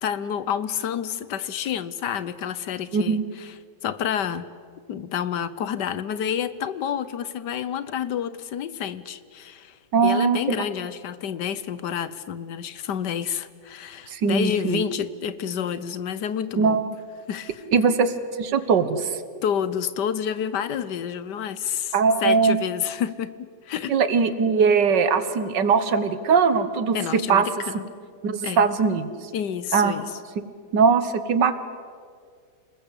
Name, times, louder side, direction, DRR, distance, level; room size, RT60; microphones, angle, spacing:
voice 1, 0.0-3.5 3.8-4.5 4.9-16.8 17.3-17.6 19.4-21.9 22.2-24.0 26.9-27.9 28.4-28.6 29.3-30.1, left 8 dB, 75° left, 15 dB, 1.5 m, -29 dB
voice 2, 2.9-3.2 9.9-10.6 14.1-14.8 16.6-16.9 17.7-19.2 21.9-22.6 23.9-27.5 28.2-29.1 29.7-30.0 30.7-31.6, right 5 dB, 80° right, 12 dB, 2.0 m, -21 dB
28.5 x 20.5 x 8.4 m, 2.1 s
omnidirectional pair, 1.9 m